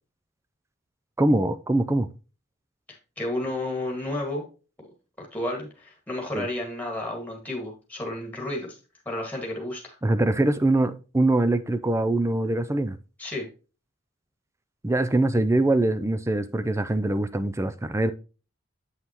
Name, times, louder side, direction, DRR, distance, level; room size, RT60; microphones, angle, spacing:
voice 1, 1.2-2.1 6.3-6.5 10.0-13.0 14.8-18.1, right 2 dB, 10° right, 0.4 m, -23 dB
voice 2, 2.9-4.5 4.8-4.9 5.2-8.8 9.1-10.0 13.2-13.5, left 1 dB, 5° left, 1.8 m, -32 dB
8.0 x 5.7 x 2.9 m
head